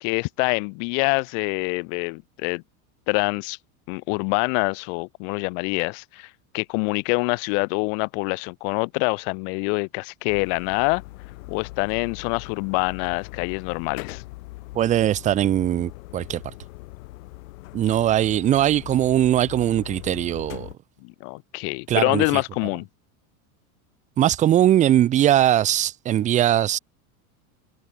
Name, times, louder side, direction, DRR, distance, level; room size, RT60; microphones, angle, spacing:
voice 1, 0.0-2.6 3.1-3.6 3.9-11.0 11.5-14.2 21.0-22.9, left 40 dB or more, 40° left, 0.7 m, -25 dB
sound 1, 10.3-20.7, left 20 dB, 65° left, 3.6 m, -40 dB
voice 2, 14.7-16.4 17.7-20.7 21.9-22.2 24.2-26.8, right 12 dB, 20° right, 0.6 m, -20 dB
supercardioid pair, 160°, 42 cm